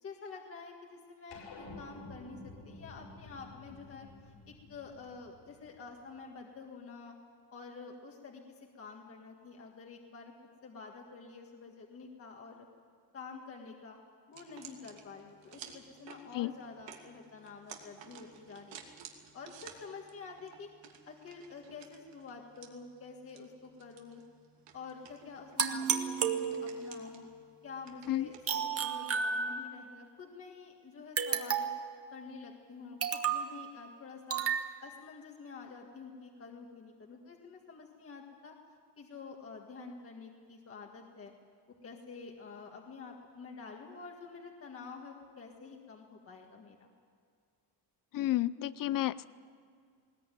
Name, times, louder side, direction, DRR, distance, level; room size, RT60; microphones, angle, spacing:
voice 1, 0.0-7.2 7.5-10.3 10.6-12.7 13.1-14.0 14.3-18.8 19.3-20.7 21.1-24.2 24.7-27.3 27.6-31.7 32.1-34.4 34.8-38.6 39.0-41.3 41.7-46.9, left 4 dB, 30° left, 1 dB, 1.8 m, -48 dB
sound 1, 1.3-6.0, left 2 dB, 75° left, 5.6 m, -51 dB
sound 2, 14.3-28.5, right 7 dB, 85° right, 2.7 m, -55 dB
sound 3, 25.6-27.0 28.5-29.9 31.2-31.9 33.0-33.5 34.3-34.7, right 7 dB, 35° right, 1.3 m, -32 dB
voice 2, 48.1-49.2, left 14 dB, 50° left, 18 dB, 0.6 m, -31 dB
20.0 x 20.0 x 9.2 m, 2.2 s
cardioid pair, 175°, 42 cm